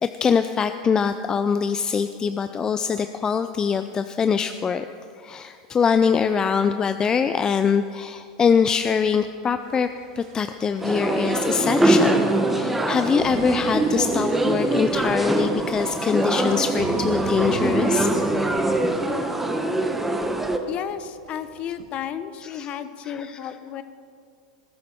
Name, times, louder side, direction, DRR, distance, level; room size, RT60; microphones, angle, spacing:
voice 1, 0.0-4.9 5.2-9.9 10.2-18.1 22.4-22.7 23.0-23.5, left 6 dB, 25° left, 10 dB, 0.5 m, -23 dB
sound 1, 8.6-21.9, right 4 dB, 65° right, 2.0 m, -41 dB
sound 2, 10.8-20.6, right 1 dB, 5° right, 1.1 m, -23 dB
voice 2, 20.7-23.8, left 9 dB, 40° left, 12 dB, 0.9 m, -33 dB
19.5 x 11.5 x 4.4 m, 2.3 s
hypercardioid pair, 110°, 3 cm